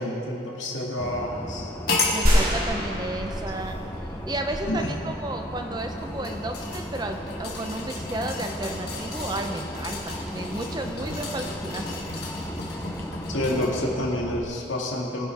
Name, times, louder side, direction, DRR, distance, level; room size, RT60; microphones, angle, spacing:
voice 1, 0.0-1.7 4.7-4.9 13.3-15.3, left 1 dB, 85° left, -1 dB, 2.1 m, -28 dB
sound 1, 1.0-14.4, equal, 10° left, 0.7 m, -35 dB
sound 2, 1.9-2.2 3.3-3.4 5.8-13.9 14.3-14.4, left 3 dB, 55° left, 2.3 m, -34 dB
voice 2, 2.1-3.8 4.3-12.0, right 1 dB, 20° right, 4 dB, 0.8 m, -33 dB
sound 3, 2.3-4.0 4.5-4.6, equal, 45° right, 2.5 m, -24 dB
21.5 x 10.5 x 3.5 m, 2.9 s
head